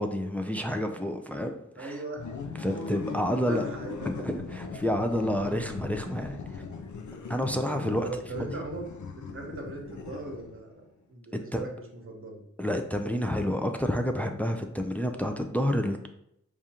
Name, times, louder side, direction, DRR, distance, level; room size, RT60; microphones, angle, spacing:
voice 1, 0.0-2.0 2.6-3.6 4.1-6.6 7.3-8.1 8.5-8.6 11.3-11.6 12.6-16.1, equal, 5° left, 5 dB, 0.4 m, -29 dB
voice 2, 1.8-2.2 2.7-2.8 3.1-4.4 7.9-8.9 9.3-10.8 11.1-12.4, right 2 dB, 45° right, 1 dB, 1.0 m, -39 dB
sound 1, 2.1-10.7, left 4 dB, 80° left, 0.5 m, -39 dB
4.9 x 2.4 x 2.8 m, 0.78 s
wide cardioid pair, 55°, 30 cm